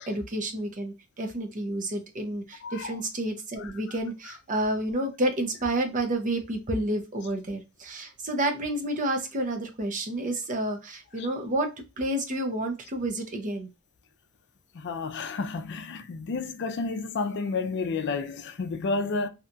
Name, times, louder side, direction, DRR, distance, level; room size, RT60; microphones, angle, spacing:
voice 1, 0.1-11.7 12.0-13.7, right 1 dB, 40° right, 0.6 m, -30 dB
voice 2, 2.6-3.0 3.6-3.7 11.2-11.3 14.7-19.3, left 4 dB, 55° left, 0.4 m, -31 dB
2.8 x 2.3 x 2.6 m
head